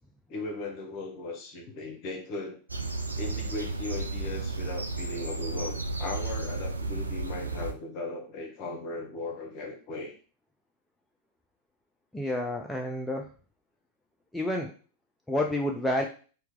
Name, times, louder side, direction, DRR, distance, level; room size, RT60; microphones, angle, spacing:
voice 1, 0.3-2.6 3.2-10.1, left 2 dB, 40° left, 2 dB, 0.9 m, -37 dB
sound 1, 2.7-7.7, right 3 dB, 80° right, 0.3 m, -33 dB
voice 2, 12.1-13.3 14.3-14.7 15.3-16.1, left 1 dB, 5° left, 1 dB, 0.4 m, -29 dB
2.8 x 2.2 x 3.6 m, 0.38 s
figure-of-eight pair, 90°, 0 cm